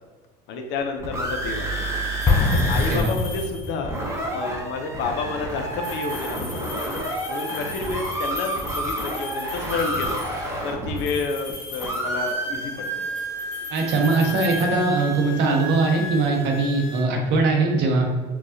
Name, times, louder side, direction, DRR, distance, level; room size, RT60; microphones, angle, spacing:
voice 1, 0.5-1.8 2.5-3.9 4.3-7.0 7.3-10.2 10.6-13.1, left 4 dB, 55° left, 4 dB, 0.6 m, -30 dB
sound 1, 0.8-3.0 3.3-3.4 3.6-11.5 11.8-17.0, right 1 dB, 15° right, 0.8 m, -30 dB
sound 2, 2.2-4.0 5.7-10.4 11.0-12.5 12.8-15.3, left 4 dB, 85° left, 1.4 m, -39 dB
Explosion, 2.2-4.1, left 3 dB, 15° left, 0.5 m, -22 dB
voice 2, 13.7-18.0, right 3 dB, 55° right, 1 dB, 0.9 m, -21 dB
4.6 x 2.3 x 2.7 m, 1.4 s
supercardioid pair, 110°, 21 cm